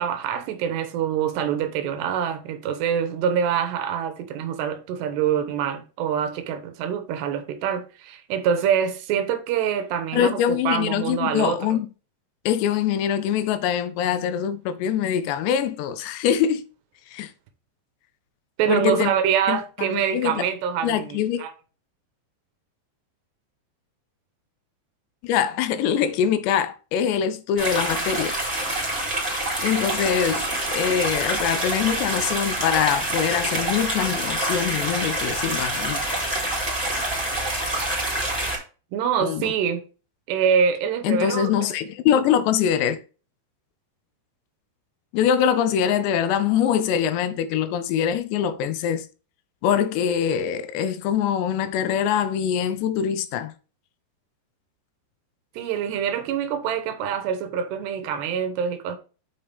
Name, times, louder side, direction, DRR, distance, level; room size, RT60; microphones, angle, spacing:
voice 1, 0.0-11.8 18.6-21.5 38.9-39.8 40.3-41.7 55.6-59.0, right 8 dB, 75° right, 2.9 m, -25 dB
voice 2, 10.1-11.9 12.5-16.6 17.1-17.3 18.7-19.1 19.5-20.4 20.8-21.4 25.2-28.4 29.6-30.4 30.7-36.0 39.2-39.5 41.0-43.0 45.1-49.1 49.6-53.5, left 9 dB, 80° left, 2.7 m, -23 dB
sound 1, 27.6-38.6, right 1 dB, 5° right, 3.4 m, -26 dB
7.8 x 5.5 x 3.4 m
omnidirectional pair, 5.1 m